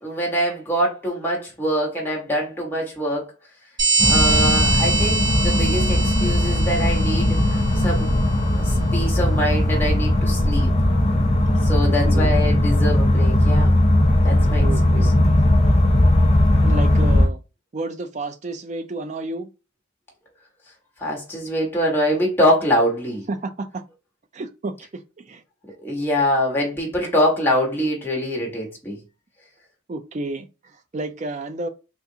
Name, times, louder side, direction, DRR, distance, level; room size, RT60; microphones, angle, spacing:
voice 1, 0.0-3.3 4.1-8.1 8.6-10.7 11.6-13.7 14.2-14.6 14.9-15.1 21.0-23.2 25.8-29.0, equal, 10° left, 1.2 m, -24 dB
sound 1, 3.8-8.1, right 3 dB, 20° right, 1.1 m, -23 dB
sound 2, 4.0-17.3, left 1 dB, 30° left, 0.5 m, -18 dB
voice 2, 14.6-15.4 16.6-17.4 17.7-19.5 23.3-23.8 24.3-25.4 29.9-31.7, right 2 dB, 35° right, 0.4 m, -31 dB
3.6 x 2.5 x 2.7 m
head